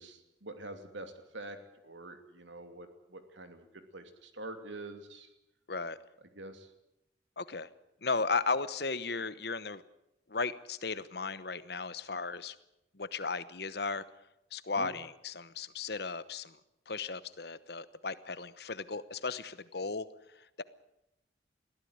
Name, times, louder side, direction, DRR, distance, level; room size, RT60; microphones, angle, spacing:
voice 1, 0.0-1.6 1.8-3.7 3.9-5.3 6.3-6.7 14.7-14.9, right 2 dB, 80° right, 7 dB, 2.8 m, -45 dB
voice 2, 7.4-7.7 8.0-9.8 10.3-12.6 12.9-14.0 14.5-16.6 16.9-20.1 20.3-20.6, left 4 dB, 55° left, 15 dB, 1.0 m, -35 dB
21.5 x 15.0 x 9.8 m, 0.88 s
head